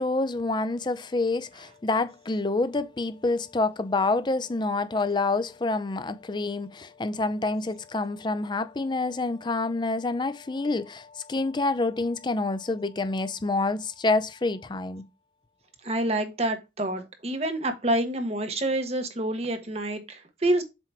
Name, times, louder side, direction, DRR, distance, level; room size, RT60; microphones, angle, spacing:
voice 1, 0.0-15.1, left 3 dB, 25° left, 0.5 m, -27 dB
voice 2, 15.8-20.6, right 1 dB, 35° right, 1.1 m, -27 dB
7.7 x 2.9 x 4.4 m
head